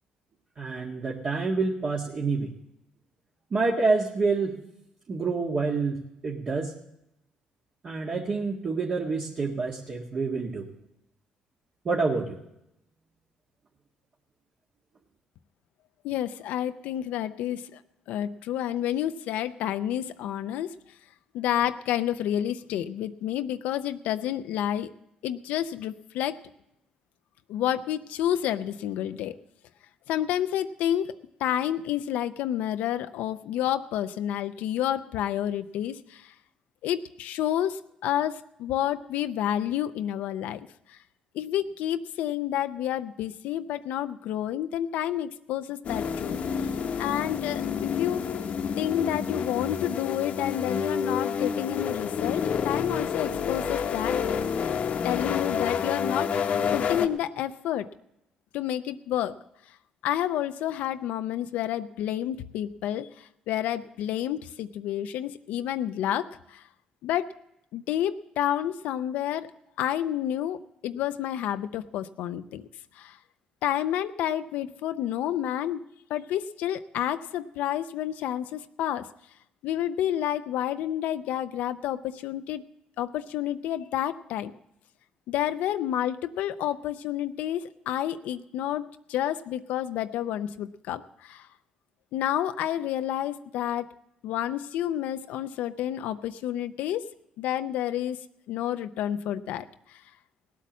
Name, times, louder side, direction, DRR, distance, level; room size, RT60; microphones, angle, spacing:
voice 1, 0.6-2.5 3.5-4.6 5.1-6.7 7.8-10.7 11.8-12.4, right 4 dB, 45° right, -3 dB, 1.9 m, -27 dB
voice 2, 16.0-17.8 18.1-20.8 21.3-24.9 25.2-26.4 27.5-29.4 30.1-31.1 31.4-36.3 36.8-41.0 41.3-48.3 48.8-54.2 55.0-57.9 58.5-59.4 60.0-66.6 67.0-67.3 67.7-69.5 69.8-72.7 72.9-73.2 73.6-75.8 76.1-79.1 79.6-82.7 83.0-84.5 85.3-91.5 92.1-93.9 94.2-97.1 97.4-98.2 98.5-100.0, left 11 dB, 80° left, 9 dB, 0.5 m, -30 dB
sound 1, 45.9-57.1, left 7 dB, 60° left, 1.0 m, -29 dB
17.5 x 8.4 x 7.3 m, 0.83 s
supercardioid pair, 75°, 3 cm